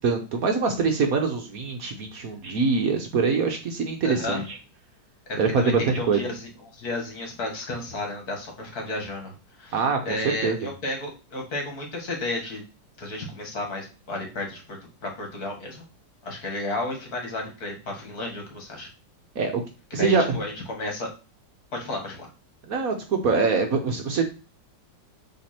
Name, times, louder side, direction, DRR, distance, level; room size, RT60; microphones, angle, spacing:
voice 1, 0.0-4.6 5.4-6.2 9.7-10.2 10.4-10.6 19.3-19.6 19.9-20.4 22.7-24.2, right 4 dB, 60° right, 4 dB, 1.2 m, -24 dB
voice 2, 4.0-4.4 5.3-12.6 13.0-15.9 16.2-18.9 19.9-21.1 21.7-22.3, left 2 dB, 55° left, 2 dB, 2.2 m, -33 dB
7.4 x 3.5 x 4.3 m, 0.33 s
omnidirectional pair, 1.9 m